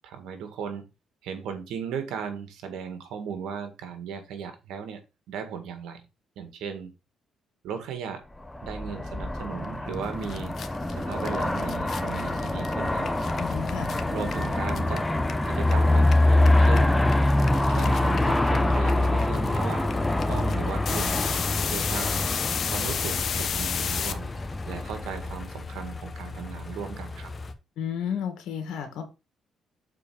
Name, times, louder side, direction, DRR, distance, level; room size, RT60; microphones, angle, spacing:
voice 1, 0.0-0.9 1.2-5.0 5.3-6.0 6.4-6.9 7.6-8.2 8.6-10.5 10.9-13.1 14.1-15.1 15.5-17.0 17.7-20.0 20.2-21.4 21.7-22.2 22.7-24.3 24.7-27.3, right 7 dB, 90° right, 1.9 m, -36 dB
Aircraft, 8.4-25.7, left 1 dB, 10° left, 0.9 m, -25 dB
sound 1, 9.9-10.0 10.2-15.7 16.0-24.1, left 7 dB, 55° left, 0.9 m, -32 dB
sound 2, 12.8-27.5, left 3 dB, 35° left, 1.2 m, -38 dB
voice 2, 13.4-13.9 27.8-29.0, left 8 dB, 85° left, 2.1 m, -32 dB
7.1 x 4.7 x 4.9 m
cardioid pair, 90°, 0 cm